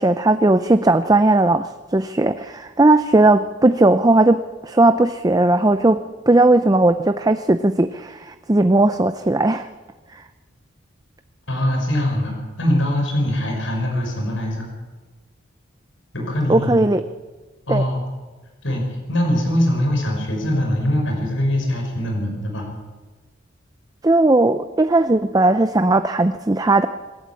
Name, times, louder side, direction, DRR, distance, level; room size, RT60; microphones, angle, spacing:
voice 1, 0.0-6.0 6.3-9.7 16.5-17.0 17.7-17.8 24.0-26.9, right 2 dB, 20° right, 10 dB, 0.5 m, -17 dB
voice 2, 11.5-14.7 16.1-16.8 17.7-18.0 18.6-22.7, left 1 dB, 85° left, 1 dB, 5.7 m, -22 dB
26.5 x 12.5 x 8.4 m, 1.3 s
head